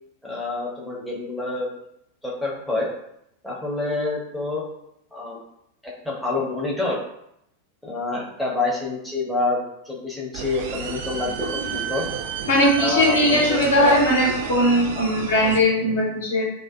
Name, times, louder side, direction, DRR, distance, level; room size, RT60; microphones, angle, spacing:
voice 1, 0.2-1.7 2.2-2.9 3.4-4.6 5.1-5.4 5.8-7.0 7.8-12.0 12.8-14.0, left 3 dB, 5° left, -5 dB, 0.6 m, -27 dB
sound 1, 10.3-15.6, right 6 dB, 55° right, 0.3 m, -31 dB
voice 2, 12.5-16.4, equal, 65° left, -3 dB, 0.7 m, -19 dB
2.5 x 2.2 x 2.3 m, 0.78 s
figure-of-eight pair, 90°, 0 cm